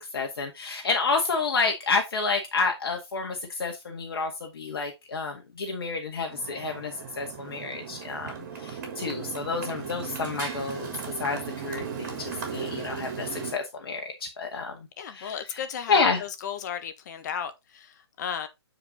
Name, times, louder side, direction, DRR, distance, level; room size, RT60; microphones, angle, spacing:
voice 1, 0.1-8.3 8.6-10.9 11.2-14.7 15.1-15.4 15.9-16.2, left 4 dB, 60° left, 1.8 m, -29 dB
Motorcycle, 6.3-13.5, right 7 dB, 40° right, 3.5 m, -37 dB
voice 2, 15.0-18.5, left 8 dB, 40° left, 1.3 m, -34 dB
8.0 x 4.9 x 3.8 m
hypercardioid pair, 145°, 14 cm